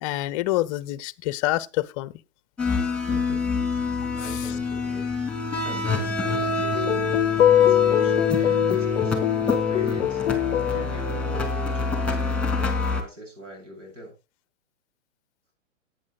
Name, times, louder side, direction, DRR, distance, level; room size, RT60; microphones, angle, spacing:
voice 1, 0.0-2.1 4.2-4.5, left 16 dB, 30° left, 0.6 m, -27 dB
sound 1, 2.6-13.0, left 3 dB, 5° left, 2.4 m, -26 dB
voice 2, 3.1-3.8 4.1-5.1 5.6-10.2 10.7-14.1, equal, 80° right, 7.5 m, -42 dB
sound 2, 6.7-10.9, left 11 dB, 75° left, 0.5 m, -22 dB
18.0 x 9.1 x 2.3 m
figure-of-eight pair, 115°, 37 cm